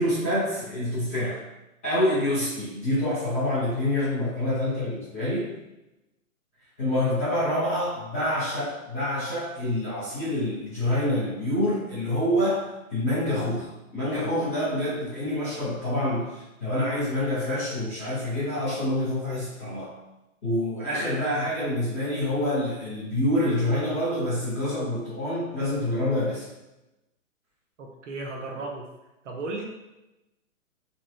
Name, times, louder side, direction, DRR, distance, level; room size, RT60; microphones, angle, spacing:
voice 1, 0.0-1.4 1.8-5.5 6.8-12.6 12.9-19.9 20.4-26.5, left 1 dB, 10° left, -15 dB, 0.6 m, -27 dB
voice 2, 27.8-28.9 29.2-29.6, right 2 dB, 60° right, 1 dB, 0.8 m, -35 dB
3.5 x 2.9 x 3.1 m, 0.96 s
hypercardioid pair, 170°, 42 cm